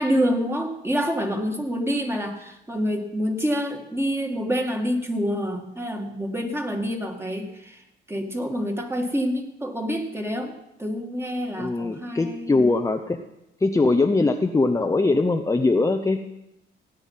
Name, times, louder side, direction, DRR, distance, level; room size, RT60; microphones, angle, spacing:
voice 1, 0.0-12.7, equal, 10° right, 3 dB, 2.2 m, -27 dB
voice 2, 11.6-13.2 13.6-16.2, left 3 dB, 15° left, 5 dB, 0.8 m, -21 dB
17.0 x 9.2 x 5.7 m, 0.88 s
cardioid pair, 90°, 20 cm